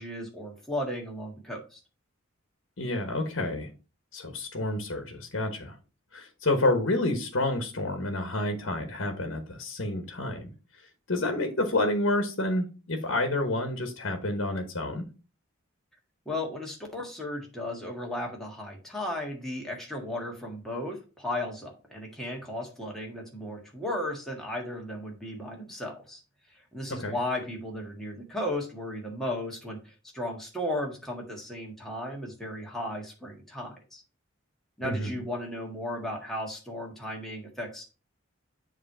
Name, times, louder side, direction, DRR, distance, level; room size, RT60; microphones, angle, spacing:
voice 1, 0.0-1.8 16.2-26.2 26.5-34.0 34.8-37.8, left 1 dB, ahead, 1.7 m, -35 dB
voice 2, 2.8-3.7 4.1-5.8 6.1-10.5 11.1-15.0 27.0-27.1 34.8-35.2, left 2 dB, 65° left, 1.2 m, -29 dB
7.6 x 3.2 x 5.5 m
head